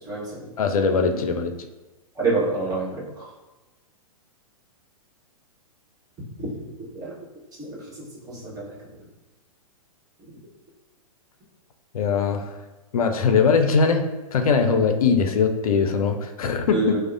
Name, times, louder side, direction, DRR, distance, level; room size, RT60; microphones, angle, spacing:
voice 1, 0.1-0.5 2.2-3.3 6.4-6.5 6.9-7.1 7.6-8.7 16.7-17.0, right 3 dB, 20° right, -6 dB, 1.1 m, -28 dB
voice 2, 0.6-1.5 11.9-12.5 12.9-17.0, left 5 dB, 75° left, 6 dB, 0.4 m, -21 dB
4.6 x 2.1 x 2.6 m, 1.1 s
hypercardioid pair, 115°, 19 cm